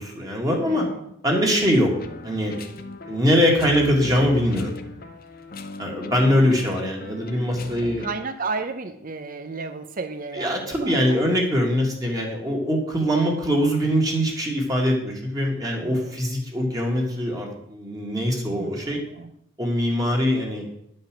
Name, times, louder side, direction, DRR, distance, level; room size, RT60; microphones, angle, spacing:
voice 1, 0.0-0.9 1.2-1.9 2.2-2.5 3.1-4.7 5.8-8.1 10.3-19.0 19.6-20.7, equal, 15° right, -1 dB, 1.9 m, -22 dB
voice 2, 0.7-1.1 6.3-6.5 7.8-11.3 15.8-16.2 18.5-19.3, right 4 dB, 40° right, 8 dB, 0.7 m, -34 dB
sound 1, 1.9-8.1, left 2 dB, 45° left, 0.8 m, -38 dB
10.5 x 5.4 x 7.4 m, 0.74 s
head